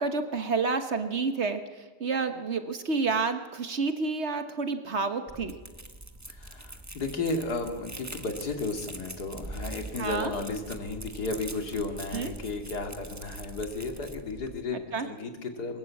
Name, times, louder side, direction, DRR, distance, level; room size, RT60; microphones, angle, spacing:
voice 1, 0.0-5.6 10.0-10.3 12.1-12.3 14.9-15.1, right 4 dB, 45° right, 8 dB, 1.4 m, -29 dB
sound 1, 5.3-14.6, right 2 dB, 10° right, 1.0 m, -43 dB
voice 2, 6.3-15.8, left 3 dB, 85° left, 4 dB, 3.0 m, -34 dB
22.0 x 20.5 x 8.5 m, 1.4 s
omnidirectional pair, 1.7 m